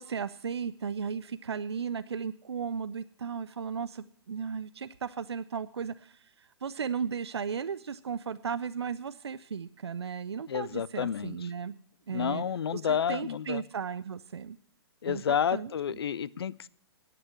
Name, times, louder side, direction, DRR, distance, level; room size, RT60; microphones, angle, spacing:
voice 1, 0.0-11.7 12.1-12.4 12.7-14.6 15.1-15.2 15.5-15.7, right 6 dB, 80° right, 13 dB, 0.4 m, -35 dB
voice 2, 10.5-11.3 12.1-13.6 15.0-16.7, left 8 dB, 70° left, 21 dB, 0.5 m, -30 dB
9.8 x 8.7 x 7.3 m, 0.62 s
figure-of-eight pair, 120°, 14 cm